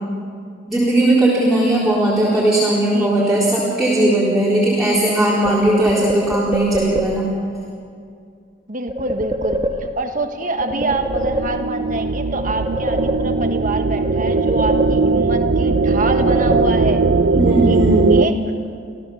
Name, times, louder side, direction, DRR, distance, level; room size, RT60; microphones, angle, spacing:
voice 1, 0.7-7.3 17.4-18.2, right 1 dB, ahead, -10 dB, 4.1 m, -17 dB
voice 2, 2.9-3.5 8.7-17.0 17.6-17.8 18.1-18.3, right 2 dB, 45° right, 5 dB, 1.5 m, -25 dB
sound 1, 5.4-7.4 8.9-10.2 10.6-12.0 12.3-13.7 14.0-15.4 15.7-17.1, right 1 dB, 25° right, 1.3 m, -26 dB
sound 2, 10.6-18.3, right 3 dB, 75° right, 0.7 m, -19 dB
26.5 x 16.0 x 7.2 m, 2.3 s
head